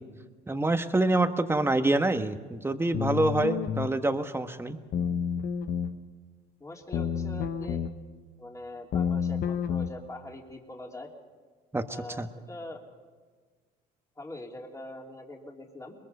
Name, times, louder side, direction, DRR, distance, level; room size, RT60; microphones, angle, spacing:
voice 1, 0.5-4.8 11.7-11.8 12.2-12.3, right 2 dB, 10° right, 8 dB, 1.4 m, -26 dB
sound 1, 2.9-3.9 4.9-5.9 6.9-7.9 8.9-9.9, left 8 dB, 60° left, 1.2 m, -29 dB
voice 2, 6.6-7.8 8.4-11.1 11.9-12.8 14.2-16.0, left 1 dB, 15° left, 1 dB, 3.2 m, -43 dB
22.0 x 21.5 x 5.5 m, 1.5 s
supercardioid pair, 80°, 20 cm